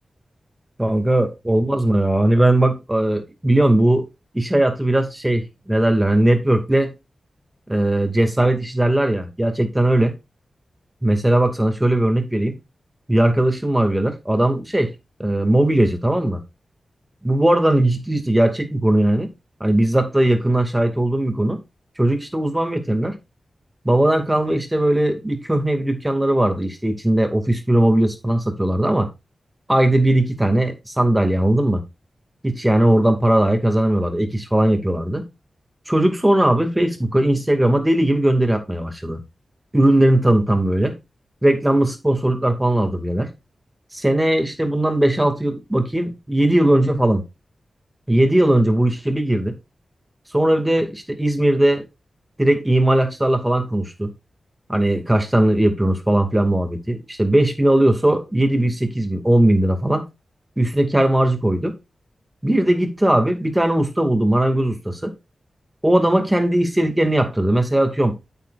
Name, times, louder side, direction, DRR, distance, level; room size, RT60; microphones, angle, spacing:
voice 1, 0.8-4.0 4.3-6.9 7.7-10.1 11.0-12.6 13.1-14.9 15.2-16.4 17.2-19.3 19.6-21.6 22.0-23.2 23.8-29.1 29.7-31.8 32.4-35.3 35.9-39.2 39.7-41.0 41.4-43.3 43.9-47.2 48.1-49.6 50.3-51.8 52.4-54.1 54.7-60.1 60.6-61.8 62.4-65.1 65.8-68.2, right 1 dB, 15° right, 2.3 m, -18 dB
8.3 x 8.0 x 2.5 m
cardioid pair, 45°, 0 cm